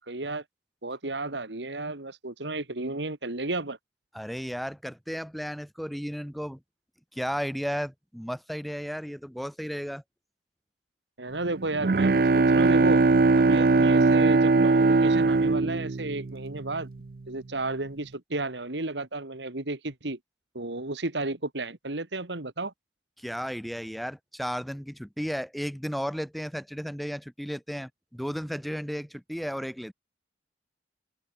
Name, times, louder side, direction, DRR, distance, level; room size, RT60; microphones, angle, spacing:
voice 1, 0.1-0.4 0.8-3.8 11.2-13.0 13.4-16.9 17.3-20.2 20.5-22.7, right 2 dB, 85° right, 2.3 m, -33 dB
voice 2, 4.1-6.6 7.1-10.0 23.2-29.9, equal, ahead, 1.8 m, -34 dB
Bowed string instrument, 11.5-17.0, right 3 dB, 55° right, 0.5 m, -21 dB
head